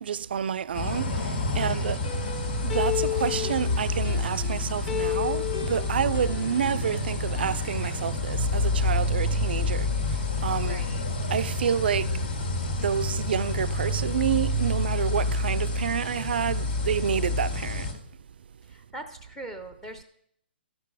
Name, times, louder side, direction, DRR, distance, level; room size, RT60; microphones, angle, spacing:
voice 1, 0.0-1.2 1.6-2.0 2.6-9.9 10.4-10.8 11.3-12.2 12.8-17.9, right 8 dB, 60° right, 0.4 m, -29 dB
sound 1, 0.7-17.9, left 2 dB, 60° left, 2.0 m, -28 dB
voice 2, 1.5-1.9 10.6-11.0 18.7-20.0, right 1 dB, 5° left, 0.6 m, -41 dB
sound 2, 2.0-4.6 4.9-7.0 7.4-7.7, left 10 dB, 35° left, 1.2 m, -33 dB
13.0 x 6.0 x 4.7 m
hypercardioid pair, 165°, 6 cm